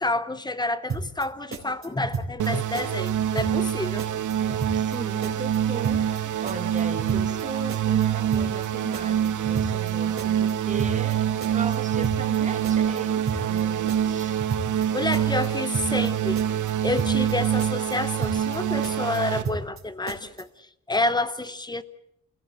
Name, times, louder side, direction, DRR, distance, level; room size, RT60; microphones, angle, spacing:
voice 1, 0.0-4.0 14.8-16.4 16.8-20.5 20.9-21.8, left 2 dB, 15° left, 0.8 m, -29 dB
sound 1, 0.9-1.3 1.5-2.5 2.7-3.1 3.4-3.7 4.0-5.0 5.2-5.6 5.8-6.2 6.5-7.4 7.7-8.1 8.3-8.7 8.9-9.9 10.2-10.5 10.8-11.1 11.4-12.4 12.6-13.0 13.3-13.6 13.9-14.9 15.1-15.5 15.7-16.1 16.4-17.3 17.6-18.0 18.2-18.6 18.8-19.8 20.1-20.4, right 4 dB, 45° right, 4.3 m, -32 dB
sound 2, 2.4-19.4, right 10 dB, 85° right, 1.1 m, -25 dB
voice 2, 4.4-14.4, right 4 dB, 25° right, 1.8 m, -37 dB
28.5 x 16.5 x 7.5 m
wide cardioid pair, 175°, 29 cm